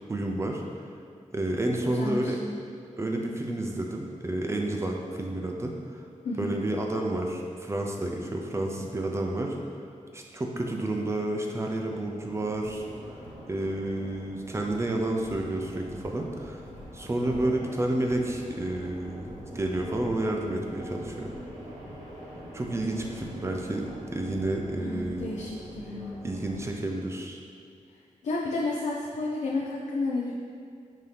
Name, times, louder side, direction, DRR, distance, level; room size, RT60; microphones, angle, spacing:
voice 1, 0.1-0.6 1.3-2.4 3.0-6.0 6.4-9.6 10.1-12.9 13.5-16.6 16.9-21.3 22.5-25.3 26.2-27.4, right 1 dB, 20° right, 1 dB, 0.4 m, -30 dB
voice 2, 1.8-2.6 6.2-6.5 24.7-25.5 25.8-26.2 28.2-30.3, left 2 dB, 65° left, -4 dB, 0.4 m, -31 dB
sound 1, 12.2-26.6, equal, 65° right, 1.1 m, -44 dB
5.4 x 2.8 x 3.3 m, 2.3 s
wide cardioid pair, 130°, 13 cm